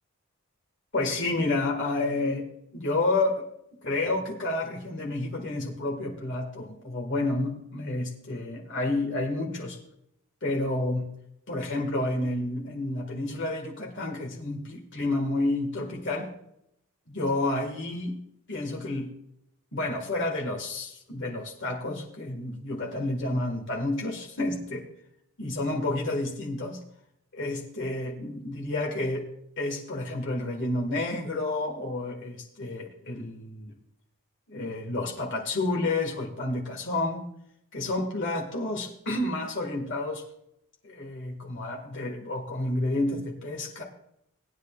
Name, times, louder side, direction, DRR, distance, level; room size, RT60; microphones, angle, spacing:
voice 1, 0.9-3.5 3.8-9.8 10.4-11.1 11.5-16.3 17.1-18.2 18.5-19.1 19.7-24.8 25.4-26.8 27.3-29.3 29.6-33.7 34.5-37.2 37.7-40.2 40.8-43.8, left 2 dB, 55° left, 0 dB, 1.9 m, -30 dB
19.5 x 10.5 x 2.5 m, 0.76 s
head